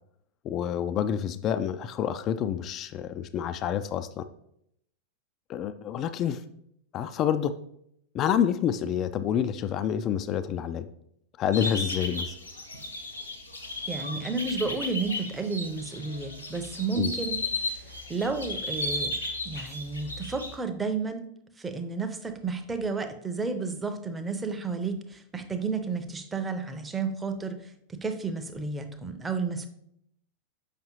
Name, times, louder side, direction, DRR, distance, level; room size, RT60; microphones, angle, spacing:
voice 1, 0.4-4.2 5.5-6.4 6.9-7.5 8.1-10.9 11.4-12.4 17.0-17.1, left 9 dB, 35° left, 12 dB, 0.3 m, -28 dB
sound 1, 11.5-20.5, left 2 dB, 80° left, 0.9 m, -35 dB
voice 2, 13.9-17.4 18.1-19.1 19.4-21.3 21.6-27.6 27.9-29.7, right 4 dB, 15° right, 7 dB, 0.6 m, -31 dB
6.6 x 5.3 x 3.0 m, 0.73 s
figure-of-eight pair, 90°, 0 cm